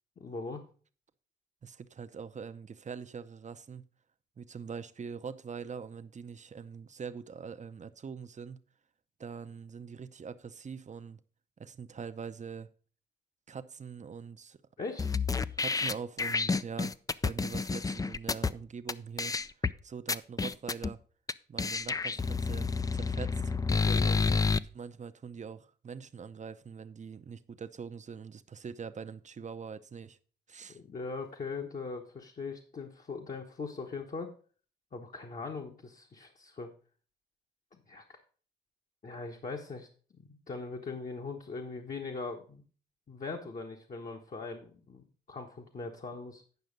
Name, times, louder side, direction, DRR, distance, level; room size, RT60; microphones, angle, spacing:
voice 1, 0.2-0.6 14.8-15.2 23.8-24.3 30.7-34.3 34.9-36.7 37.9-38.0 39.0-39.9 40.1-42.6 43.1-46.4, left 4 dB, 45° left, 1.2 m, -40 dB
voice 2, 1.6-3.9 4.4-8.6 9.2-11.2 11.6-12.7 13.5-14.6 15.6-17.0 17.2-19.3 19.8-21.0 21.5-23.5 24.7-30.2 30.5-30.8, right 6 dB, 40° right, 0.7 m, -43 dB
sound 1, 15.0-18.5 18.9-19.0 19.2-19.7 20.1-20.9 21.3-21.4 21.6-24.6, left 4 dB, 20° left, 0.4 m, -29 dB
9.4 x 5.7 x 5.2 m
cardioid pair, 75°, 18 cm